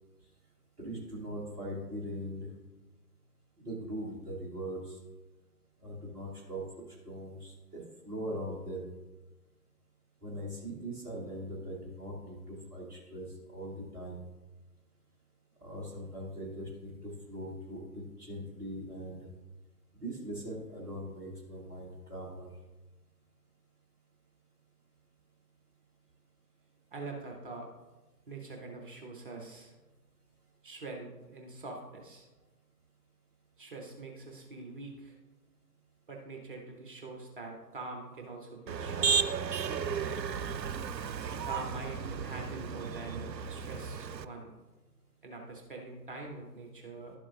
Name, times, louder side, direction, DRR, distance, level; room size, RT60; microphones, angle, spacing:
voice 1, 0.8-2.5 3.6-5.0 5.8-8.9 10.2-14.2 15.6-19.3 20.0-22.5, right 1 dB, 5° right, -9 dB, 1.0 m, -41 dB
voice 2, 26.9-27.7 28.3-29.7 30.6-32.3 33.6-35.1 36.1-39.2 41.4-44.5 45.2-47.2, right 3 dB, 30° right, 1 dB, 1.0 m, -44 dB
Motor vehicle (road), 38.7-44.2, right 6 dB, 85° right, 0.6 m, -34 dB
11.5 x 7.3 x 2.5 m, 1.1 s
figure-of-eight pair, 140°, 49 cm